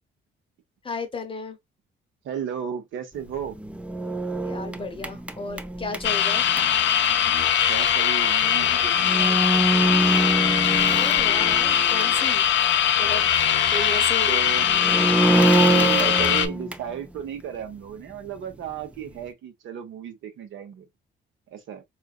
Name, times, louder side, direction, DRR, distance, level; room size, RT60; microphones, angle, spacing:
voice 1, 0.8-1.6 4.4-6.4 10.9-12.5 13.0-14.4, left 3 dB, 25° left, 0.8 m, -34 dB
voice 2, 2.2-3.6 7.7-9.9 13.8-13.9 14.2-14.7 15.7-20.9 21.5-21.8, right 8 dB, 75° right, 0.9 m, -34 dB
sound 1, 3.4-6.6 8.5-8.6 9.0-12.2 12.6-12.7 14.5-17.0, right 2 dB, 5° right, 0.4 m, -25 dB
sound 2, 6.0-16.5, left 9 dB, 70° left, 0.5 m, -21 dB
3.7 x 2.5 x 2.4 m
cardioid pair, 90°, 20 cm